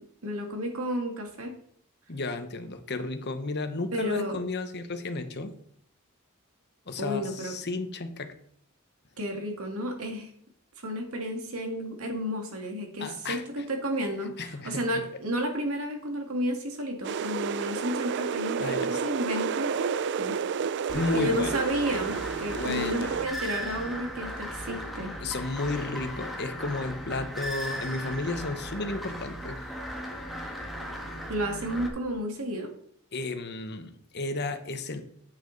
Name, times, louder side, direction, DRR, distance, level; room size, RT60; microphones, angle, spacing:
voice 1, 0.2-1.6 3.9-4.4 7.0-7.5 9.2-10.3 10.8-20.3 21.1-25.1 31.3-32.7, equal, 85° right, 3 dB, 2.2 m, -32 dB
voice 2, 2.1-5.5 6.9-8.3 13.0-13.6 14.4-15.0 18.6-19.0 20.9-21.6 22.5-23.1 25.2-29.6 33.1-35.0, left 3 dB, 50° left, 8 dB, 1.1 m, -33 dB
sound 1, 17.0-23.3, right 6 dB, 55° right, 0.4 m, -31 dB
sound 2, 20.9-31.9, equal, ahead, 1.6 m, -37 dB
8.8 x 8.0 x 4.0 m, 0.64 s
head